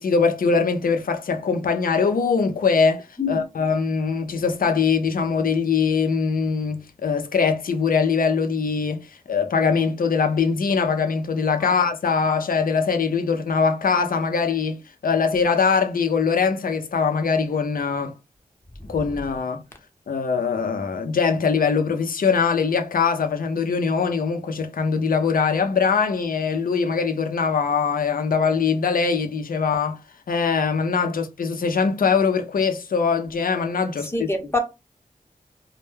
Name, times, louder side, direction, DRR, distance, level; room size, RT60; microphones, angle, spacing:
voice 1, 0.0-18.1 18.9-19.6 20.1-30.0 30.3-34.3, left 5 dB, 75° left, 0.5 m, -22 dB
voice 2, 34.0-34.6, left 3 dB, 15° left, 0.7 m, -26 dB
2.1 x 2.1 x 3.1 m
wide cardioid pair, 85°, 15 cm